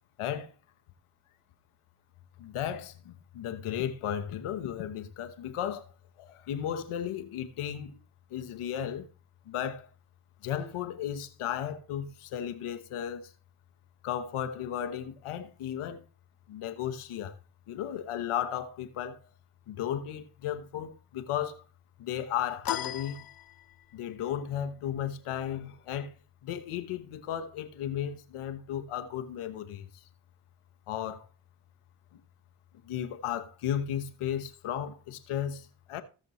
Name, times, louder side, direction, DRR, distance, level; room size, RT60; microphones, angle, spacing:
voice 1, 0.2-0.5 2.4-5.9 6.2-8.0 8.3-9.1 9.5-9.9 10.4-13.3 14.0-16.0 16.5-17.4 17.7-19.2 19.7-21.6 22.0-23.3 23.9-26.1 26.4-30.0 30.9-31.3 32.8-36.0, left 10 dB, 90° left, 1.2 m, -35 dB
sound 1, 22.6-24.0, left 10 dB, 45° left, 0.7 m, -37 dB
17.0 x 6.7 x 3.1 m
supercardioid pair, 45°, 49 cm